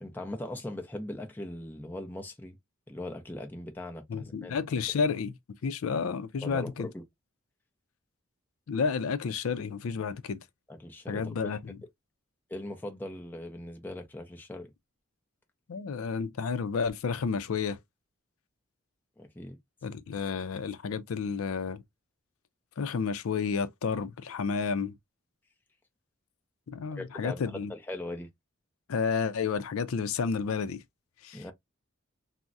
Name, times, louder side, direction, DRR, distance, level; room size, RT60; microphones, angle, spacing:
voice 1, 0.0-2.6 2.9-4.5 6.4-7.0 10.7-11.6 12.5-14.7 19.2-19.6 27.0-28.3 31.3-31.5, left 1 dB, 10° left, 0.4 m, -40 dB
voice 2, 4.1-5.3 5.6-6.9 8.7-10.4 11.1-11.8 15.7-17.8 19.8-21.8 22.8-24.9 26.7-27.7 28.9-30.8 31.2-31.4, left 5 dB, 85° left, 0.4 m, -31 dB
3.5 x 2.0 x 2.6 m
head